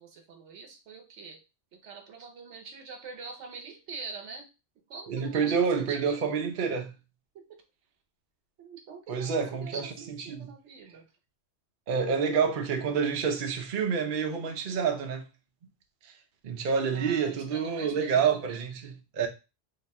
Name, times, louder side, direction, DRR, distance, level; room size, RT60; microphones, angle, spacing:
voice 1, 0.0-1.4 1.7-4.5 4.9-6.4 7.3-7.6 8.6-11.0 16.9-18.7, right 4 dB, 85° right, 1.1 m, -44 dB
voice 2, 5.1-6.9 9.1-10.5 11.9-15.2 16.4-19.3, right 6 dB, 55° right, 0.7 m, -28 dB
2.9 x 2.4 x 4.1 m
omnidirectional pair, 1.2 m